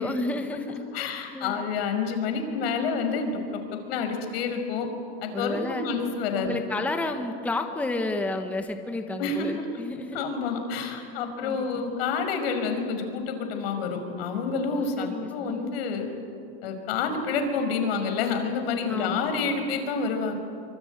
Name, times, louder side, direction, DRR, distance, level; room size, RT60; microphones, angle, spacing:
voice 1, 0.0-1.1 1.3-1.6 5.3-5.9 6.4-10.3 11.4-11.8 14.7-15.7 18.9-19.3, left 2 dB, 5° left, 5 dB, 1.2 m, -31 dB
voice 2, 0.9-4.9 5.2-6.6 9.2-9.6 10.1-16.1 16.6-20.3, left 5 dB, 75° left, 6 dB, 5.6 m, -28 dB
25.5 x 25.0 x 9.1 m, 2.5 s
supercardioid pair, 160°, 31 cm